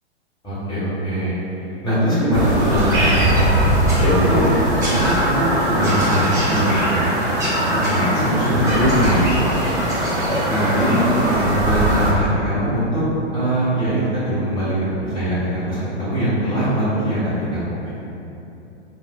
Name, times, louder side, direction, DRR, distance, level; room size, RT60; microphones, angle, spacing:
voice 1, 0.4-1.3 1.8-3.4 4.0-4.6 4.8-7.1 7.7-9.2 9.4-9.6 10.4-13.0 13.3-17.8, equal, 15° left, -12 dB, 1.4 m, -21 dB
Bird vocalization bird call bird song, 2.3-12.1, right 1 dB, 10° right, 0.8 m, -20 dB
4.2 x 2.1 x 2.4 m, 2.9 s
figure-of-eight pair, 105°, 34 cm